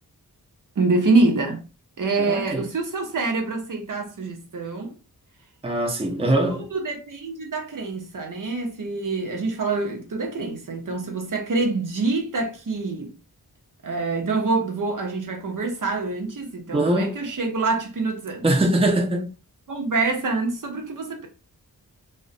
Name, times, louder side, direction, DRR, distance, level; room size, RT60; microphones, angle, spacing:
voice 1, 0.8-1.6 2.0-5.0 6.5-13.2 13.8-18.5 19.7-21.3, right 3 dB, 55° right, 0.7 m, -26 dB
voice 2, 2.2-2.6 5.6-6.6 16.7-17.1 18.4-19.3, right 1 dB, 15° right, 0.6 m, -22 dB
2.4 x 2.1 x 2.4 m
cardioid pair, 50°, 39 cm